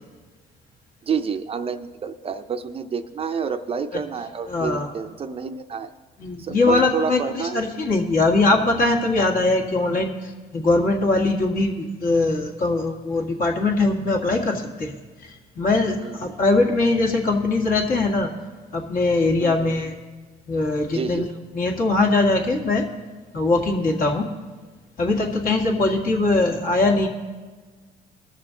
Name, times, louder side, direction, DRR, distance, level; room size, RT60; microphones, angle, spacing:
voice 1, 1.0-5.9 6.4-7.6 16.0-16.3 19.4-19.8 20.9-21.3, right 6 dB, 35° right, 8 dB, 0.5 m, -29 dB
voice 2, 4.5-4.9 6.2-14.9 15.2-18.3 18.7-20.0 20.5-21.3 21.5-22.8 23.3-24.3 25.0-27.1, left 2 dB, 55° left, 2 dB, 1.8 m, -21 dB
20.0 x 6.7 x 3.8 m, 1.4 s
cardioid pair, 110°, 17 cm